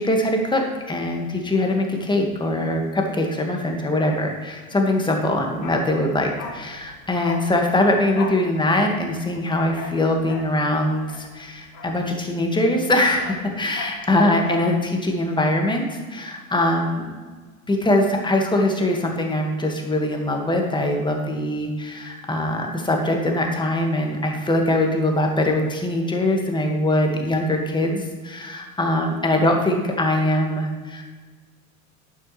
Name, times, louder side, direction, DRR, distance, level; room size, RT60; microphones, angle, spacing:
voice 1, 0.0-17.1 17.7-31.0, left 1 dB, 10° left, 2 dB, 2.0 m, -22 dB
Bark, 5.5-12.5 12.8-14.7 15.0-15.1, left 4 dB, 45° left, 2.1 m, -38 dB
11.5 x 9.0 x 3.3 m, 1.4 s
figure-of-eight pair, 80°, 43 cm